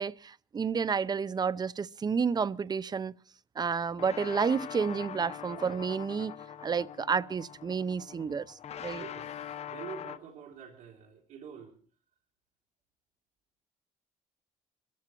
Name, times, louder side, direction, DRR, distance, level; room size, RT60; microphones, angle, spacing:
voice 1, 0.0-3.1 3.6-6.3 6.6-9.0, right 6 dB, 30° right, 0.6 m, -30 dB
sound 1, 3.9-10.2, left 9 dB, 55° left, 1.0 m, -43 dB
voice 2, 8.9-11.8, right 7 dB, 80° right, 3.1 m, -46 dB
26.0 x 14.5 x 3.0 m
cardioid pair, 95°, 13 cm